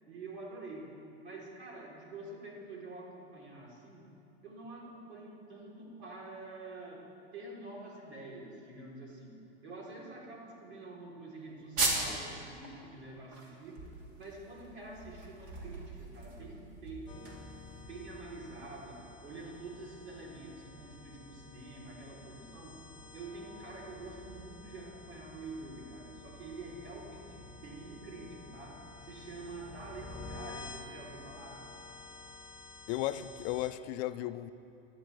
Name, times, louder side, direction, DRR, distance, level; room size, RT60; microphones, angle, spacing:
voice 1, 0.1-0.9 1.2-4.1 4.4-13.8 14.2-17.3 17.8-22.8 23.1-31.6, right 2 dB, 85° right, -3 dB, 3.4 m, -47 dB
sound 1, 11.8-12.3 12.6-12.7 13.1-17.8, right 2 dB, 45° right, 2.4 m, -37 dB
sound 2, 17.1-33.7, left 3 dB, 15° left, 1.4 m, -50 dB
voice 2, 32.9-34.5, left 14 dB, 45° left, 12 dB, 0.4 m, -35 dB
18.0 x 11.5 x 3.3 m, 2.8 s
hypercardioid pair, 115°, 33 cm